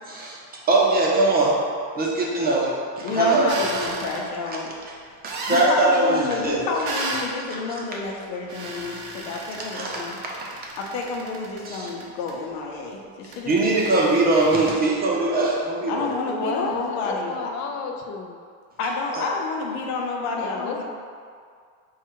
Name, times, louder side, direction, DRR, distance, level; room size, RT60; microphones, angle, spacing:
voice 1, 0.1-0.4 0.7-1.6 2.0-3.5 3.8-3.9 5.2-6.7 9.6-10.0 11.7-11.8 13.4-16.1 19.1-19.2, right 2 dB, 25° right, -3 dB, 0.7 m, -21 dB
voice 2, 3.0-4.7 5.4-10.2 10.8-14.2 15.9-17.5 18.8-20.8, left 3 dB, 80° left, 0 dB, 0.9 m, -30 dB
sound 1, 3.5-4.2 5.2-5.7 6.9-7.3 8.5-12.3 13.3-14.7, right 3 dB, 85° right, 0.9 m, -34 dB
voice 3, 16.3-18.4 20.3-20.8, left 4 dB, 45° left, 2 dB, 0.5 m, -31 dB
4.7 x 2.4 x 4.5 m, 2.1 s
cardioid pair, 150°, 41 cm